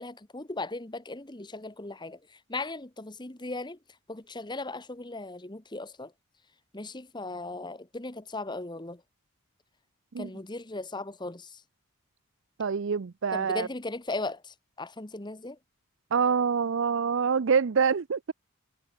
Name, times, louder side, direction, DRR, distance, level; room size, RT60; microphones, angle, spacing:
voice 1, 0.0-3.8 4.1-6.1 6.7-9.0 10.2-11.6 13.3-15.6, left 2 dB, 20° left, 1.2 m, -37 dB
voice 2, 12.6-13.7 16.1-18.3, right 6 dB, 55° right, 0.5 m, -26 dB
head